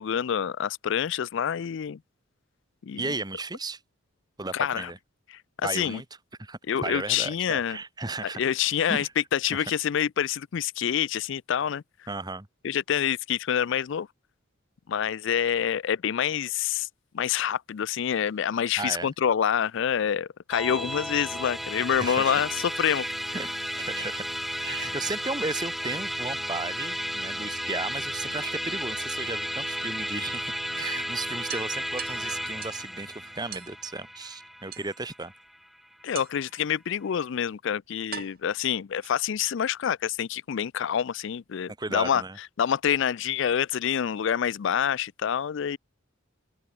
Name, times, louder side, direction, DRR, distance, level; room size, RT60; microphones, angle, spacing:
voice 1, 0.0-2.0 2.8-3.0 4.5-4.9 5.3-5.4 5.7-6.0 6.7-7.8 8.4-11.8 12.6-14.1 14.9-16.9 17.1-23.0 36.0-42.2 42.6-45.8, left 8 dB, 65° left, 0.4 m, -27 dB
voice 2, 3.0-3.8 4.4-5.0 5.6-6.0 6.4-8.4 8.8-9.1 9.5-9.7 12.1-12.5 18.8-19.1 22.0-22.4 23.3-23.5 23.8-24.2 24.5-35.3 41.8-42.4, right 3 dB, 20° right, 1.4 m, -35 dB
Musical instrument, 20.5-36.0, equal, ahead, 0.8 m, -33 dB
sound 1, 27.5-28.5 30.0-30.1 30.5-30.6 30.9-31.0 31.5-32.9 33.5-33.8 34.7-35.3 36.1-36.6 37.4-37.5 38.1-39.5, right 9 dB, 50° right, 1.8 m, -42 dB
head